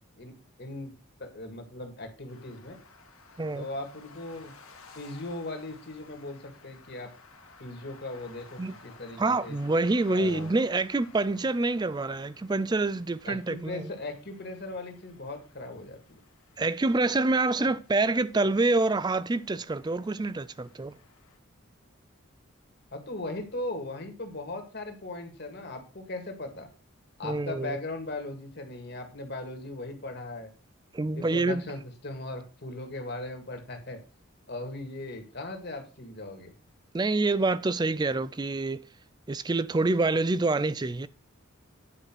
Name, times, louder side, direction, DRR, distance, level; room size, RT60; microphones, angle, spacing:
voice 1, 0.2-0.9 1.2-2.8 3.6-4.5 4.9-7.1 7.6-9.6 10.1-10.5 13.3-16.2 17.6-17.7 22.9-26.7 27.2-30.5 31.1-34.0 34.5-36.5, left 2 dB, 50° left, 1.9 m, -38 dB
sound 1, 2.3-21.4, left 4 dB, 80° left, 1.8 m, -56 dB
voice 2, 9.2-13.9 16.6-21.0 27.2-27.8 30.9-31.7 36.9-38.8 39.3-41.1, right 3 dB, 20° right, 0.4 m, -26 dB
9.9 x 4.9 x 6.0 m
head